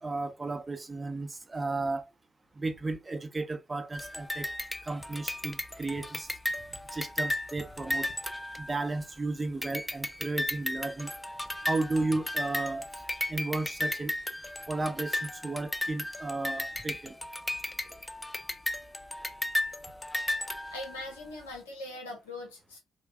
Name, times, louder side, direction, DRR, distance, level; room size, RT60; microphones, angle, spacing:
voice 1, 0.0-2.0 2.6-4.5 4.8-6.3 6.9-8.1 8.6-11.1 11.6-13.0 13.3-14.1 14.7-17.1, right 3 dB, 25° right, 0.7 m, -34 dB
sound 1, 3.9-9.2 9.6-21.2, left 1 dB, 10° left, 0.4 m, -35 dB
voice 2, 20.7-22.8, left 2 dB, 80° left, 0.7 m, -41 dB
5.6 x 2.2 x 2.4 m
figure-of-eight pair, 40°, 0 cm